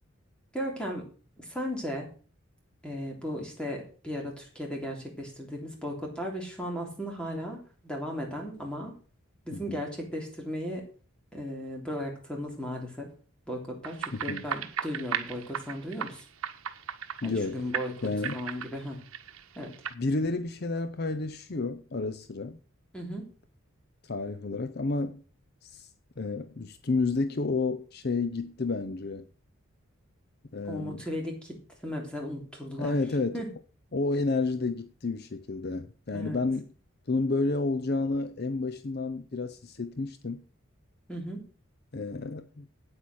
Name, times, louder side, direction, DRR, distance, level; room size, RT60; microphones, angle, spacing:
voice 1, 0.5-1.1 1.4-2.1 2.8-8.9 9.4-10.8 11.3-13.1 13.5-16.2 17.2-19.0 19.5-19.7 22.9-23.3 30.6-31.6 31.8-33.0 33.3-33.5 36.1-36.4 41.1-41.4, equal, 5° left, 3.2 m, -36 dB
voice 2, 9.5-9.8 14.1-14.5 17.2-17.7 18.0-18.4 19.9-22.6 24.0-25.2 25.6-25.9 26.2-29.3 30.5-31.0 32.8-33.4 33.9-36.7 37.1-40.4 41.9-42.7, left 3 dB, 50° left, 0.6 m, -30 dB
sound 1, 13.8-17.5 17.7-19.9, right 8 dB, 85° right, 1.0 m, -36 dB
8.8 x 8.5 x 6.3 m
head